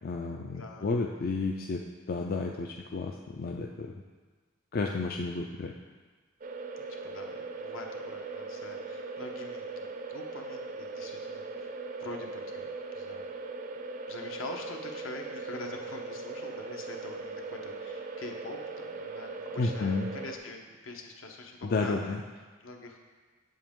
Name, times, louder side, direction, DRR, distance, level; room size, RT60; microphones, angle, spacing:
voice 1, 0.0-1.8 2.1-3.9 4.7-5.7 19.6-20.1 21.6-22.2, left 3 dB, 45° left, 1 dB, 0.4 m, -31 dB
voice 2, 0.5-0.9 6.8-9.7 10.1-11.7 12.0-13.2 14.1-22.2 22.6-23.0, left 3 dB, 70° left, 2 dB, 0.9 m, -44 dB
sound 1, 6.4-20.4, right 3 dB, 40° right, 0.4 m, -39 dB
7.7 x 7.6 x 3.6 m, 1.4 s
head